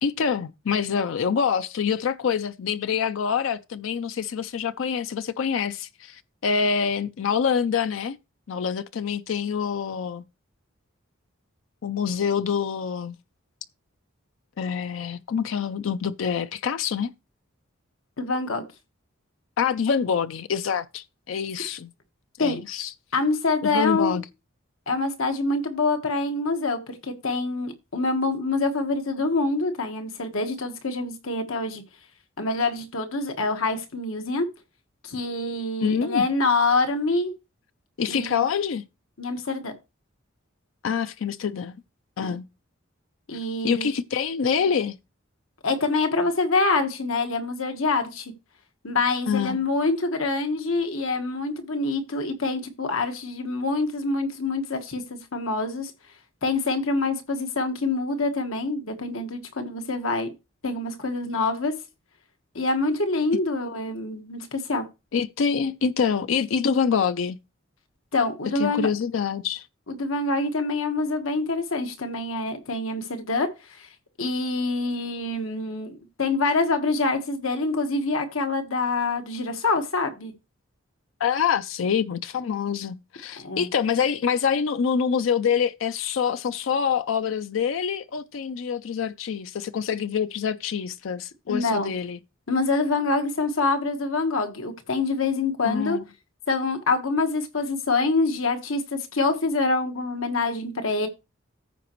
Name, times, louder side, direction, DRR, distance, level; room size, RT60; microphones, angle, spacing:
voice 1, 0.0-8.2 8.5-10.2 11.8-13.2 14.6-17.1 19.6-21.9 22.4-22.9 23.6-24.2 35.8-36.3 38.0-38.8 40.8-41.8 42.2-42.4 43.6-45.0 49.3-49.6 65.1-67.4 68.6-69.7 81.2-92.2 95.6-96.0, left 6 dB, 70° left, 0.4 m, -26 dB
voice 2, 18.2-18.7 22.4-22.6 23.1-24.2 24.9-31.8 32.4-34.5 35.0-37.3 38.1-38.4 39.2-39.7 42.2-42.4 43.3-43.9 45.6-48.3 48.8-55.9 56.4-60.3 60.6-61.7 62.5-64.8 68.1-68.9 69.9-73.9 74.2-80.3 83.4-83.7 91.5-91.9 92.5-96.0 96.5-101.1, left 3 dB, 85° left, 1.4 m, -26 dB
14.5 x 5.0 x 3.0 m
head